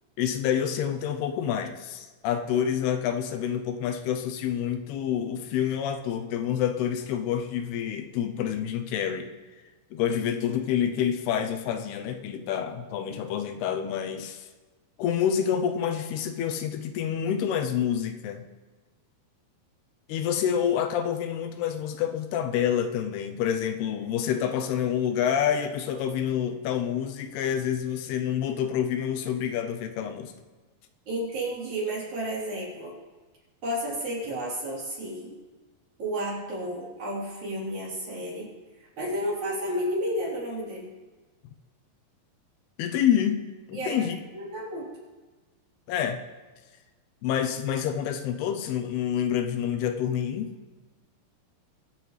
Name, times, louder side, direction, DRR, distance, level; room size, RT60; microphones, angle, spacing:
voice 1, 0.2-9.3 9.9-14.5 15.0-18.4 20.1-30.3 42.8-44.2 45.9-46.2 47.2-50.5, left 9 dB, 80° left, 7 dB, 2.7 m, -28 dB
voice 2, 31.1-32.9 33.6-35.3 36.0-38.5 38.8-40.9 43.7-44.9, equal, 45° right, -6 dB, 4.9 m, -32 dB
23.0 x 7.8 x 3.3 m, 1.3 s
omnidirectional pair, 4.6 m